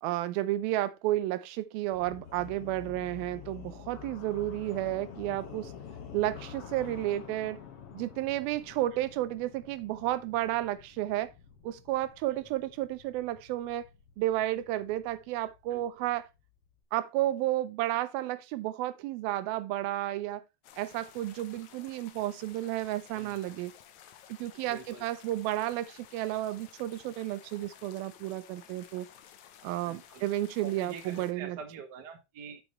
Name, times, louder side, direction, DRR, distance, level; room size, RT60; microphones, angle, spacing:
voice 1, 0.0-5.7 6.1-7.6 7.9-11.3 11.6-13.9 14.2-16.3 16.9-20.4 20.8-23.7 24.3-29.1 29.6-31.6, right 15 dB, 85° right, 2.6 m, -32 dB
sound 1, 1.9-16.8, left 8 dB, 50° left, 2.0 m, -49 dB
sound 2, 20.6-31.3, left 9 dB, 70° left, 1.9 m, -54 dB
voice 2, 24.6-25.0 29.8-30.2 30.6-32.6, right 6 dB, 50° right, 1.3 m, -45 dB
9.0 x 7.2 x 3.1 m
omnidirectional pair, 4.1 m